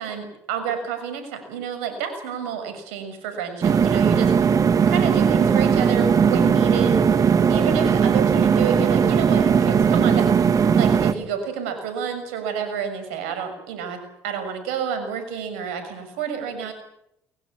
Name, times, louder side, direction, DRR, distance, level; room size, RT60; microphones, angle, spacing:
voice 1, 0.0-4.3 4.9-7.2 7.5-16.7, right 7 dB, 85° right, 8 dB, 6.3 m, -29 dB
sound 1, 3.6-11.1, right 7 dB, 50° right, 2.3 m, -18 dB
23.0 x 22.0 x 8.6 m, 0.80 s
hypercardioid pair, 60°, 8 cm